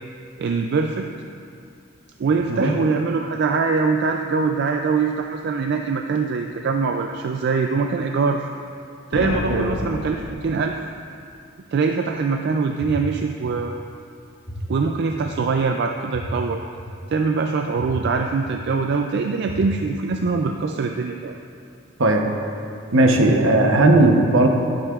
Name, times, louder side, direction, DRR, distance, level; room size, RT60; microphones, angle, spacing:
voice 1, 0.4-1.1 2.2-8.5 9.1-10.8 11.7-13.7 14.7-16.6 17.1-21.3, right 4 dB, 55° right, 4 dB, 0.3 m, -23 dB
sound 1, 9.1-11.2, left 2 dB, 85° left, 0.5 m, -31 dB
sound 2, 12.8-12.9 13.4-13.5 14.5-14.6 15.1-15.2 16.1-16.2 16.8-16.9 17.8-17.9 18.4-18.5 19.5-19.6 20.1-20.2, equal, 25° left, 1.2 m, -36 dB
voice 2, 22.9-24.5, right 2 dB, 75° right, 2 dB, 0.9 m, -16 dB
11.0 x 8.7 x 2.4 m, 2.4 s
head